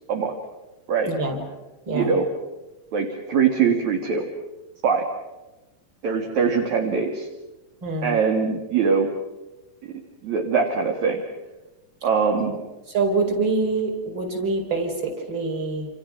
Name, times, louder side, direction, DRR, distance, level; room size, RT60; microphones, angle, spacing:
voice 1, 1.1-1.4 1.9-2.1 7.8-8.2 12.9-15.9, right 3 dB, 30° right, 2 dB, 5.4 m, -25 dB
voice 2, 1.9-2.3 2.9-4.2 4.8-5.0 6.0-7.3 8.0-9.1 9.8-9.9 10.2-11.2 12.0-12.5, right 6 dB, 55° right, 2 dB, 3.3 m, -22 dB
28.5 x 28.5 x 6.1 m, 1.1 s
omnidirectional pair, 4.0 m